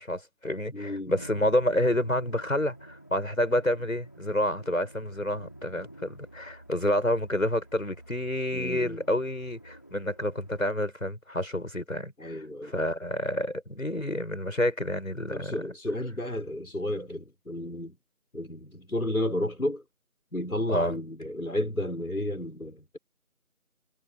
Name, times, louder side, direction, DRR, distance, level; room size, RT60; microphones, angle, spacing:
voice 1, 0.0-15.6 20.7-20.9, left 1 dB, 70° left, 6.7 m, -29 dB
voice 2, 0.7-1.2 8.5-9.0 12.2-12.7 15.3-18.0 18.3-19.8 20.3-23.0, left 1 dB, 85° left, 5.5 m, -32 dB
sound 1, 1.1-10.6, right 1 dB, 15° left, 3.6 m, -49 dB
figure-of-eight pair, 175°, 42 cm